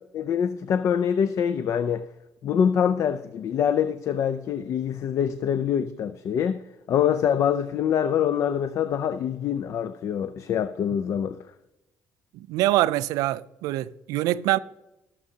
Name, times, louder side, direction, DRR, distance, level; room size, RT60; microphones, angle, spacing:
voice 1, 0.1-2.0 2.4-6.6 6.9-11.4, left 8 dB, 60° left, 0.4 m, -25 dB
voice 2, 12.3-14.6, right 15 dB, 85° right, 0.4 m, -24 dB
19.0 x 7.3 x 2.8 m
cardioid pair, 95°, 6 cm